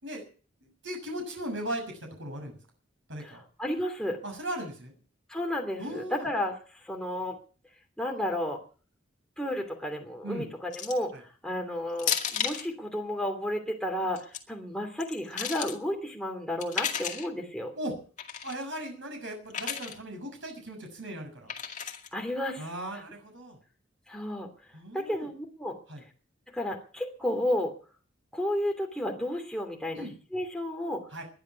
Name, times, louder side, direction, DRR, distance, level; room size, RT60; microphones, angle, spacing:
voice 1, 0.6-1.8 2.2-2.6 3.1-3.4 4.2-4.9 5.8-6.3 10.2-10.5 17.7-17.9 18.4-21.5 22.6-23.6 24.7-25.3 25.9-26.0 29.9-30.1 31.1-31.2, right 1 dB, 75° right, 2 dB, 6.6 m, -37 dB
voice 2, 3.2-4.2 5.3-7.4 8.0-8.6 9.4-17.7 22.1-22.7 24.1-24.5 24.9-25.8 26.5-27.7 28.3-31.0, left 1 dB, 5° left, 1 dB, 2.9 m, -32 dB
sound 1, 10.7-11.1 12.0-12.7 14.0-14.4 15.0-15.8 16.6-17.3 18.2-18.6 19.5-20.0 21.5-22.1, left 8 dB, 40° left, 2.2 m, -33 dB
20.5 x 10.5 x 5.9 m, 0.40 s
head